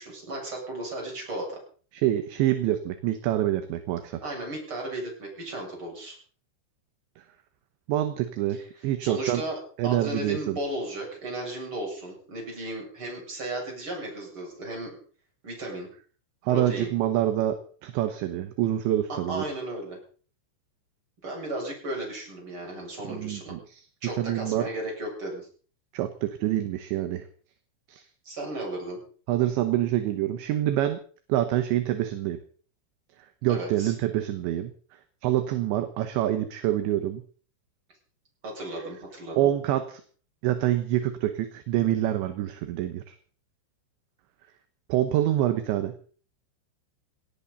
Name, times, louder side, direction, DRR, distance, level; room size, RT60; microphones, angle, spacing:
voice 1, 0.0-1.6 4.2-6.2 8.5-8.6 9.0-15.0 15.4-15.9 16.5-16.9 19.3-20.0 21.2-23.5 24.0-25.5 28.2-29.0 33.5-33.9 38.4-39.5, right 1 dB, 25° right, -1 dB, 7.9 m, -35 dB
voice 2, 1.9-4.1 7.9-9.4 9.8-10.6 16.4-19.4 23.1-23.8 24.2-24.7 25.9-27.2 27.9-28.0 29.3-31.0 31.3-32.4 33.4-34.7 35.2-37.2 39.4-40.0 40.4-43.0 44.9-45.9, right 13 dB, 75° right, 9 dB, 3.2 m, -26 dB
20.0 x 17.5 x 4.1 m, 0.43 s
omnidirectional pair, 5.8 m